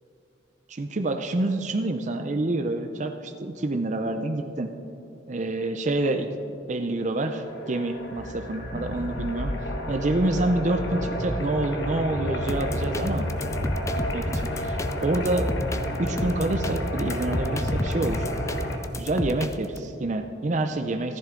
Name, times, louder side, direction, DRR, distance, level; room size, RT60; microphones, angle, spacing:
voice 1, 0.7-4.7 5.3-9.5 9.9-13.3 13.9-15.5 16.0-18.3 18.9-21.2, right 2 dB, 40° right, 6 dB, 0.5 m, -27 dB
sound 1, 7.2-18.8, equal, 70° left, 1.4 m, -30 dB
sound 2, 12.5-19.8, left 1 dB, 15° left, 0.4 m, -32 dB
15.0 x 13.5 x 3.8 m, 2.7 s
head